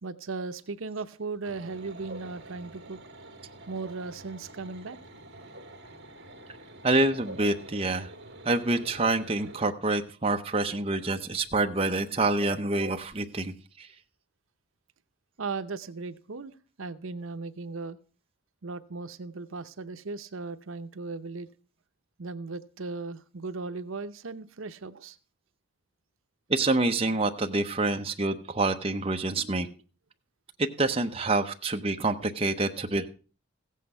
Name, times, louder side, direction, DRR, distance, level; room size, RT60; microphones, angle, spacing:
voice 1, 0.0-3.0 3.7-5.0 15.4-18.0 18.6-21.5 22.2-25.2, right 4 dB, 75° right, 11 dB, 0.8 m, -37 dB
sound 1, 1.4-9.7, right 1 dB, 50° right, 2.0 m, -46 dB
voice 2, 6.8-8.1 8.4-13.9 26.5-29.7 30.6-33.1, right 2 dB, 25° right, 5 dB, 0.8 m, -27 dB
15.5 x 8.4 x 5.5 m, 0.38 s
head